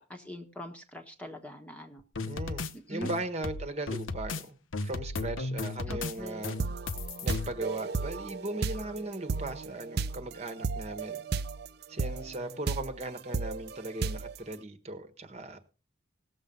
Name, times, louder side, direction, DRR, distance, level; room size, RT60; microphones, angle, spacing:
voice 1, 0.0-2.0 2.9-3.1 5.9-6.4, equal, 5° left, 1.2 m, -43 dB
sound 1, 2.2-2.7 3.0-4.4 4.7-6.1 6.4-7.5, left 3 dB, 85° left, 0.9 m, -35 dB
voice 2, 2.2-4.6 4.8-6.6 7.2-11.2 11.9-15.6, right 2 dB, 35° right, 1.3 m, -38 dB
sound 2, 6.2-11.7 12.0-14.4, right 4 dB, 55° right, 0.6 m, -34 dB
18.0 x 7.4 x 5.4 m
head